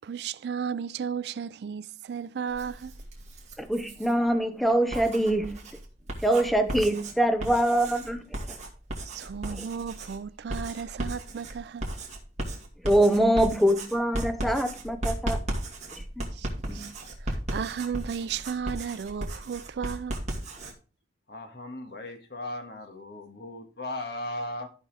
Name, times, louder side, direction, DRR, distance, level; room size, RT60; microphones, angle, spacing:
voice 1, 0.0-2.9 9.1-11.9 16.3-16.9 17.2-20.2, right 7 dB, 65° right, 0.3 m, -34 dB
Writing, 2.5-4.1 4.7-20.7, right 1 dB, 40° right, 2.3 m, -35 dB
voice 2, 3.6-5.6 6.2-8.2 9.6-9.7 12.8-15.4 16.2-16.3 16.7-16.8, right 1 dB, ahead, 0.8 m, -24 dB
voice 3, 21.3-24.7, left 1 dB, 60° left, 1.7 m, -37 dB
14.0 x 5.5 x 3.3 m
head